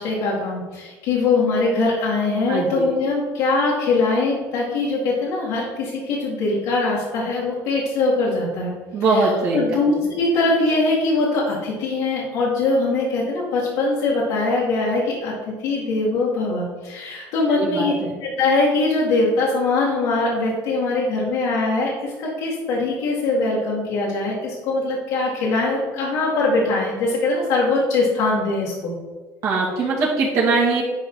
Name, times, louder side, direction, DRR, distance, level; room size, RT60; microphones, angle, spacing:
voice 1, 0.0-8.7 9.1-17.9 18.2-28.9 29.8-29.9, left 3 dB, 85° left, -6 dB, 2.2 m, -22 dB
voice 2, 2.5-2.9 8.9-9.6 17.6-18.1 29.4-30.8, right 3 dB, 60° right, -5 dB, 2.3 m, -21 dB
11.0 x 4.8 x 3.9 m, 1.3 s
cardioid pair, 135°, 6 cm